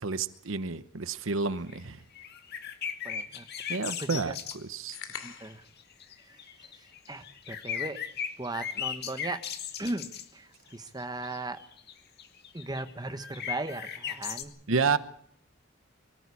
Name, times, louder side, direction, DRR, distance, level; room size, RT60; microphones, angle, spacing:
voice 1, 0.0-2.0 3.7-5.0 14.7-15.0, right 4 dB, 70° right, 1.0 m, -30 dB
sound 1, 1.4-1.8 2.1-4.6 5.4-5.5 5.8-10.2 11.0-14.4, left 8 dB, 50° left, 1.9 m, -37 dB
voice 2, 3.0-3.4 3.7-4.3 5.2-5.6 6.2-8.0 8.4-9.4 9.8-11.6 12.5-14.5, right 2 dB, 20° right, 1.2 m, -38 dB
sound 2, 4.9-5.7, left 7 dB, 70° left, 2.7 m, -42 dB
24.5 x 14.5 x 8.4 m
head